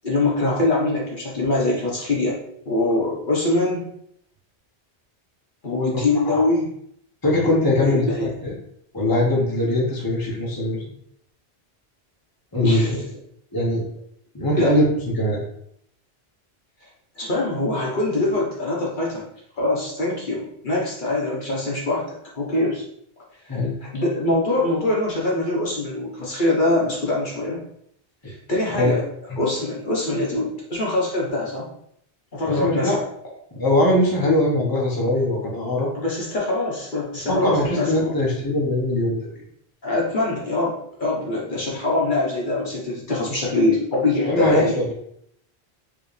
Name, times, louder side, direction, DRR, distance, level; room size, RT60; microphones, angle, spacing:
voice 1, 0.0-2.4 2.7-3.9 5.6-6.7 7.8-8.3 12.6-13.0 14.6-14.7 17.2-19.2 19.6-22.8 23.8-27.6 28.2-29.0 29.4-31.7 32.3-33.0 35.9-38.1 39.8-44.8, left 2 dB, 50° left, -4 dB, 1.3 m, -23 dB
voice 2, 7.2-8.0 8.4-8.5 8.9-10.9 12.5-13.0 13.5-13.8 14.3-15.4 23.5-23.7 28.8-28.9 29.3-29.4 32.4-33.0 33.5-35.9 37.3-39.2 44.3-44.9, left 1 dB, 20° left, -4 dB, 1.1 m, -21 dB
5.0 x 3.2 x 3.3 m, 0.69 s
omnidirectional pair, 1.1 m